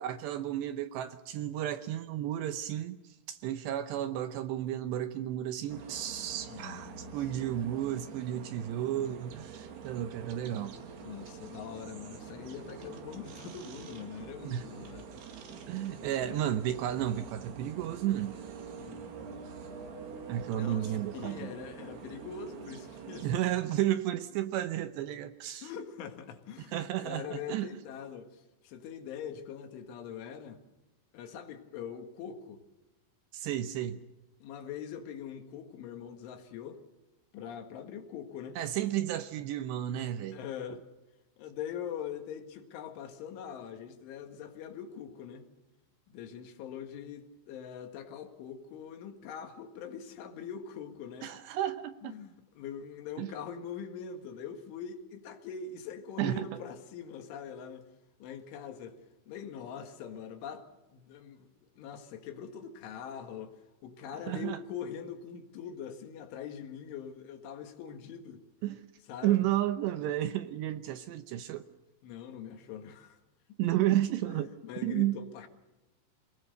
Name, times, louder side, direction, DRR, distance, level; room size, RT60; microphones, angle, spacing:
voice 1, 0.0-3.0 3.3-10.8 14.4-14.7 15.7-18.3 20.3-21.5 23.2-25.7 26.7-27.7 33.3-34.0 38.6-40.4 51.2-52.1 53.2-53.3 56.2-56.5 64.3-64.6 68.6-68.8 69.2-71.7 73.6-74.5 74.8-75.1, right 12 dB, 75° right, 10 dB, 2.7 m, -32 dB
sound 1, 5.7-23.4, right 6 dB, 60° right, 3.9 m, -46 dB
voice 2, 6.4-7.5 11.0-15.2 15.9-16.4 18.8-19.4 20.3-23.3 25.6-26.7 27.0-30.6 31.1-32.6 34.4-36.8 37.3-38.6 40.3-40.8 41.4-45.5 46.1-51.3 52.0-57.9 58.2-59.0 59.3-60.6 60.9-63.6 63.8-68.4 69.1-69.4 72.0-73.2 74.3-75.5, left 8 dB, 75° left, 6 dB, 4.2 m, -43 dB
27.5 x 19.0 x 6.6 m, 1.0 s
omnidirectional pair, 5.6 m